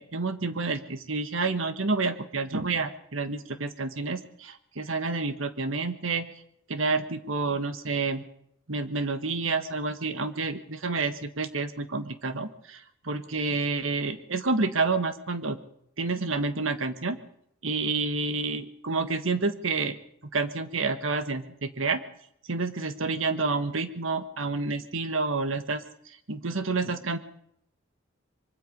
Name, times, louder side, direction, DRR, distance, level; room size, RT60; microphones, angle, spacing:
voice 1, 0.0-6.3 6.7-8.2 8.7-15.6 16.0-17.2 17.6-20.0 20.3-22.0 22.5-25.8 26.3-27.2, right 3 dB, 90° right, 9 dB, 1.5 m, -29 dB
24.0 x 23.5 x 5.3 m, 0.72 s
head